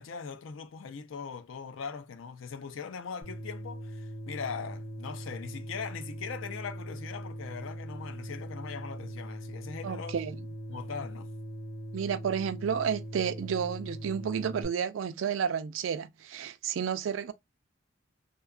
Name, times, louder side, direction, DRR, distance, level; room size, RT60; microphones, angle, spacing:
voice 1, 0.0-10.2 10.7-11.3, left 6 dB, 85° left, 0.5 m, -40 dB
sound 1, 3.2-14.6, right 1 dB, 55° left, 1.0 m, -41 dB
voice 2, 9.8-10.4 11.9-17.3, right 7 dB, 75° right, 0.3 m, -31 dB
2.7 x 2.3 x 2.3 m
head